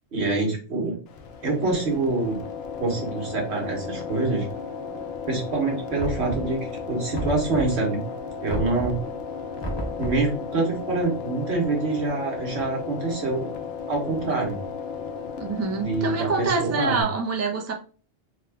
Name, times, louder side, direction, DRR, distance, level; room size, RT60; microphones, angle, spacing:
voice 1, 0.1-1.0 1.4-2.4 2.8-4.5 5.3-8.0 8.4-9.0 10.0-13.5 13.9-14.6 15.7-17.0, right 3 dB, 80° right, 0 dB, 1.5 m, -26 dB
sound 1, 1.1-17.0, left 6 dB, 75° left, 0.8 m, -35 dB
Knock, 6.0-6.7 7.1-7.9 8.5-9.1 9.6-10.3, equal, 25° left, 0.8 m, -32 dB
voice 2, 15.4-17.7, right 3 dB, 20° right, 2 dB, 0.4 m, -26 dB
3.6 x 2.3 x 3.4 m, 0.38 s
omnidirectional pair, 1.1 m